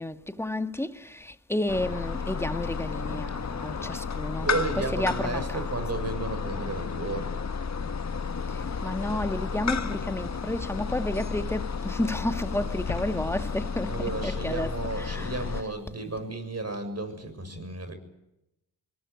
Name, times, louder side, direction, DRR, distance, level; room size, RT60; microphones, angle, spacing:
voice 1, 0.0-4.5 4.8-5.6 8.8-15.4, left 1 dB, 5° left, 1.7 m, -31 dB
sound 1, 1.7-15.6, left 5 dB, 35° left, 1.5 m, -32 dB
voice 2, 4.4-7.5 13.9-18.0, right 2 dB, 30° right, 7.0 m, -33 dB
22.0 x 20.5 x 9.8 m
hypercardioid pair, 50°, 50 cm